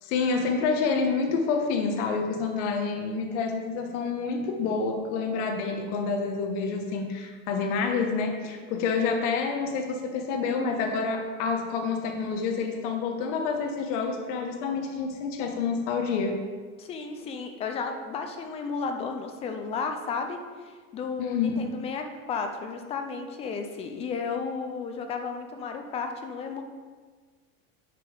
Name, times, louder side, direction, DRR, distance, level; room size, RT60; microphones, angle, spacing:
voice 1, 0.0-16.4 21.2-21.7, left 5 dB, 55° left, 4 dB, 1.3 m, -28 dB
voice 2, 16.8-26.6, left 5 dB, 15° left, 6 dB, 0.3 m, -33 dB
10.5 x 5.4 x 5.0 m, 1.5 s
supercardioid pair, 155°, 42 cm